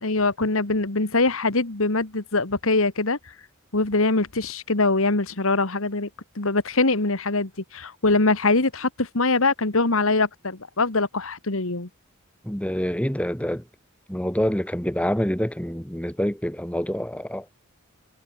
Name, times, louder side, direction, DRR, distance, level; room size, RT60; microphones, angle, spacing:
voice 1, 0.0-3.2 3.7-6.1 6.4-11.9, left 3 dB, 70° left, 2.0 m, -23 dB
voice 2, 12.4-13.6 14.1-17.4, equal, 5° left, 3.0 m, -26 dB
head